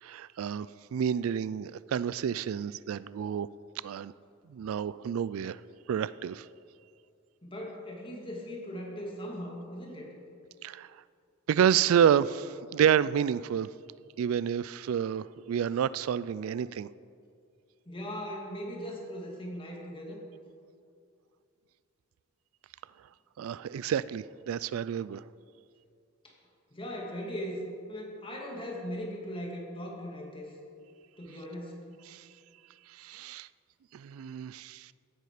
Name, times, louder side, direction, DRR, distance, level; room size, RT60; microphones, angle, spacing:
voice 1, 0.0-3.5 3.8-4.1 4.5-5.6 5.9-6.5 10.6-10.9 11.5-13.7 14.2-16.9 23.4-25.2 32.1-32.2 32.9-33.5 33.9-34.9, right 8 dB, 75° right, 18 dB, 0.3 m, -29 dB
voice 2, 7.4-10.1 17.9-20.2 26.2-26.3 26.7-27.6 27.9-30.5 31.2-31.8, equal, 25° left, -1 dB, 2.6 m, -39 dB
16.0 x 11.0 x 5.0 m, 2.4 s
head